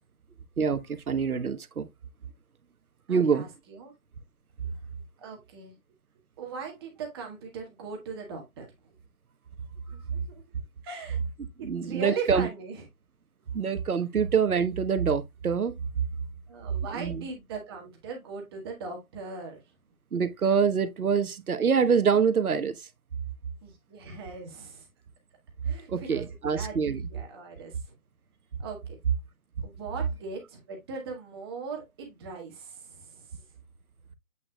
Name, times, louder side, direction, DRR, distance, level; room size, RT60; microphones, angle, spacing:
voice 1, 0.6-1.9 3.1-3.5 11.6-12.5 13.5-15.7 16.9-17.2 20.1-22.8 25.9-27.0, right 6 dB, 80° right, 1.2 m, -25 dB
voice 2, 3.1-3.9 5.2-5.7 6.4-8.9 9.9-10.4 10.8-11.2 11.6-12.8 16.5-19.6 23.6-24.9 25.6-26.2 26.5-27.9 28.6-29.0 29.6-33.3, right 5 dB, 15° right, 1.5 m, -39 dB
8.3 x 5.2 x 2.2 m
hypercardioid pair, 160°, 43 cm